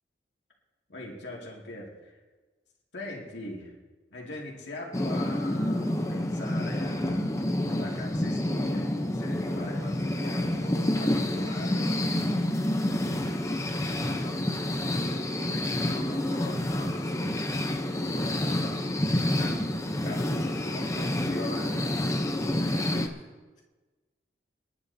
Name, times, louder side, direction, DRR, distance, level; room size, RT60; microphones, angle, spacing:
voice 1, 0.9-2.2 2.9-3.7 4.1-12.3 19.4-19.6 20.0-22.1 22.6-22.7, left 1 dB, 75° left, -2 dB, 2.3 m, -41 dB
sound 1, 4.9-23.1, left 1 dB, 15° left, 0.7 m, -28 dB
voice 2, 13.1-17.7 18.1-19.5 20.4-21.0 22.7-23.6, equal, 40° left, -6 dB, 2.3 m, -44 dB
26.0 x 10.5 x 2.8 m, 1.3 s
head